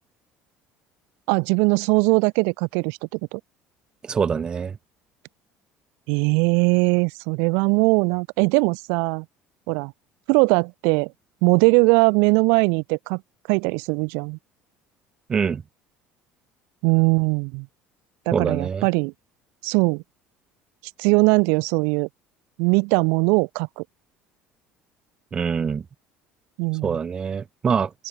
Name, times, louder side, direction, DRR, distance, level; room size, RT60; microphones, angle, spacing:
voice 1, 1.3-3.4 6.1-9.2 9.7-9.9 10.3-11.1 11.4-13.2 13.5-14.4 16.8-17.7 18.3-19.1 19.6-20.0 21.0-22.1 22.6-23.8 26.6-27.0, right 35 dB, 80° right, 2.1 m, -20 dB
voice 2, 4.0-4.7 15.3-15.6 18.3-18.9 25.3-25.8 26.8-27.9, right 6 dB, 20° right, 1.0 m, -24 dB
cardioid pair, 170°, 4 cm